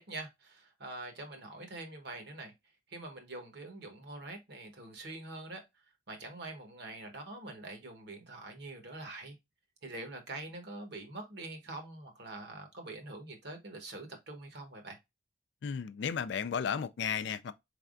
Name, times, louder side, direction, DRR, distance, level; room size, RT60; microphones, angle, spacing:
voice 1, 0.0-2.5 2.9-5.6 6.1-9.4 9.8-15.0, right 2 dB, 55° right, 1.1 m, -45 dB
voice 2, 15.6-17.5, left 7 dB, 55° left, 0.3 m, -34 dB
4.4 x 3.3 x 2.4 m
head